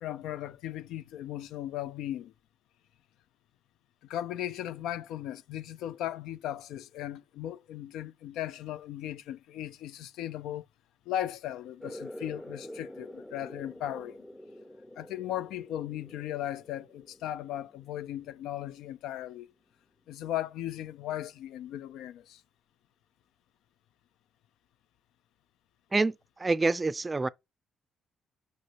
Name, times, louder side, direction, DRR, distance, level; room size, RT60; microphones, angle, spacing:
voice 1, 0.0-2.3 4.0-10.7 11.1-14.2 15.0-19.5 20.1-22.4, left 12 dB, 90° left, 0.3 m, -37 dB
sound 1, 11.8-19.0, left 1 dB, 15° left, 0.6 m, -47 dB
voice 2, 26.4-27.3, right 3 dB, 25° right, 0.4 m, -26 dB
6.2 x 5.3 x 2.9 m
cardioid pair, 90°, 0 cm